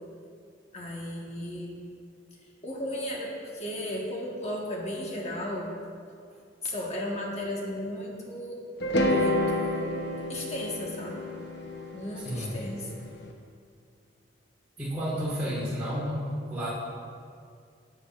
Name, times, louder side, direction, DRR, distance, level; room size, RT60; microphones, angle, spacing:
voice 1, 0.7-1.8 2.6-5.7 6.6-8.6 8.9-10.0 10.3-11.3 11.9-13.0, left 1 dB, 35° left, -2 dB, 1.5 m, -35 dB
sound 1, 8.8-13.0, left 1 dB, 65° left, 0.8 m, -29 dB
voice 2, 14.8-16.2 16.5-16.7, equal, 10° right, -11 dB, 1.6 m, -31 dB
11.0 x 8.3 x 2.5 m, 2.3 s
head